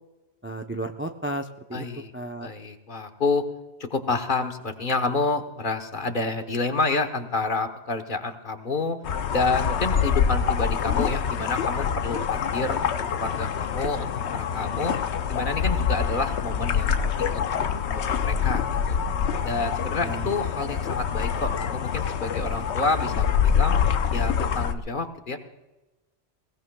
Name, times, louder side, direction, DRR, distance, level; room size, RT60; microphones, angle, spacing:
voice 1, 0.4-1.8 2.1-2.5 20.0-20.3, right 1 dB, 15° right, 5 dB, 0.4 m, -33 dB
voice 2, 1.7-2.1 2.4-3.4 3.9-9.0 9.3-12.9 13.2-14.9 15.3-17.4 17.9-18.6 18.9-19.0 19.4-23.8 24.1-25.4, left 3 dB, 50° left, 6 dB, 1.2 m, -28 dB
sound 1, 9.0-24.7, left 7 dB, 75° left, 1.0 m, -25 dB
21.5 x 17.0 x 2.3 m, 1.1 s
omnidirectional pair, 1.1 m